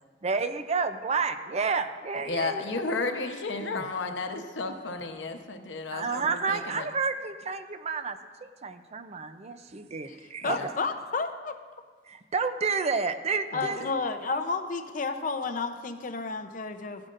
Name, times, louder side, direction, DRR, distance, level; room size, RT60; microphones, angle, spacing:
voice 1, 0.2-2.8 5.9-10.7 12.1-13.8, right 4 dB, 35° right, 10 dB, 0.5 m, -30 dB
voice 2, 2.3-6.9 10.4-10.7 13.5-13.7, left 3 dB, 75° left, 5 dB, 0.9 m, -33 dB
voice 3, 10.4-11.6 13.5-17.1, left 4 dB, 45° left, 7 dB, 0.7 m, -31 dB
15.5 x 10.5 x 2.5 m, 1.5 s
head